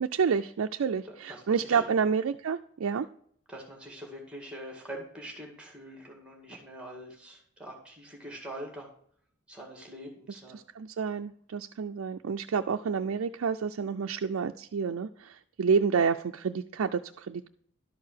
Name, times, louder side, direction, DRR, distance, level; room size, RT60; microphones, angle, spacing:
voice 1, 0.0-3.1 10.5-17.5, right 6 dB, 80° right, 5 dB, 0.4 m, -29 dB
voice 2, 1.1-1.8 3.5-8.9 9.5-10.6, right 1 dB, 5° right, 1 dB, 1.9 m, -44 dB
12.0 x 4.7 x 6.4 m, 0.62 s
head